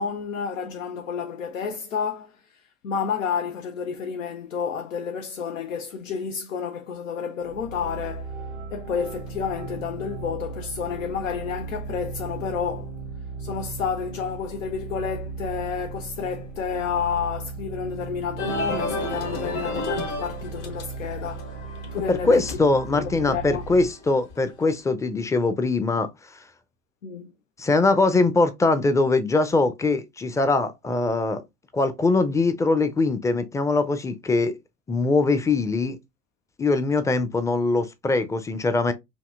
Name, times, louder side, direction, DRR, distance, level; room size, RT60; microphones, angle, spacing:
voice 1, 0.0-8.4 8.7-12.9 13.4-22.4 22.9-23.7 27.0-27.3, left 6 dB, 80° left, 0.5 m, -30 dB
sound 1, 7.4-23.9, right 4 dB, 85° right, 1.0 m, -37 dB
sound 2, 18.4-24.7, left 2 dB, 65° left, 1.4 m, -33 dB
voice 2, 22.1-26.1 27.6-31.4 31.7-34.6 34.9-36.0 36.6-38.9, left 3 dB, 10° left, 0.5 m, -22 dB
5.2 x 2.7 x 2.4 m
figure-of-eight pair, 70°, 38 cm